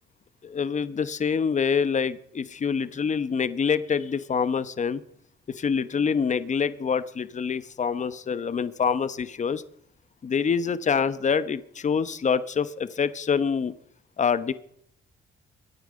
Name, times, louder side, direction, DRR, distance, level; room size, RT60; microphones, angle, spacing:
voice 1, 0.4-5.0 5.5-9.6 10.2-13.7 14.2-14.5, left 6 dB, 35° left, 14 dB, 1.0 m, -26 dB
22.5 x 9.4 x 5.2 m, 0.70 s
cardioid pair, 90°, 20 cm